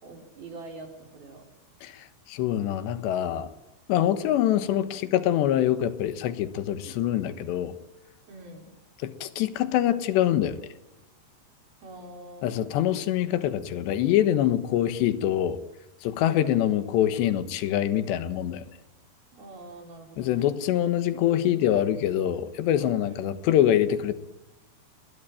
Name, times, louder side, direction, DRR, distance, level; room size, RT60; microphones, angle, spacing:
voice 1, 0.0-1.4 8.3-8.7 11.8-12.7 16.2-16.6 19.3-20.6 23.0-23.3, right 2 dB, 60° right, 3 dB, 6.9 m, -44 dB
voice 2, 1.8-3.5 3.9-7.8 9.0-10.6 12.4-15.6 16.0-18.7 20.2-24.1, left 11 dB, 90° left, 12 dB, 3.5 m, -25 dB
29.0 x 21.5 x 9.0 m, 1.0 s
omnidirectional pair, 4.8 m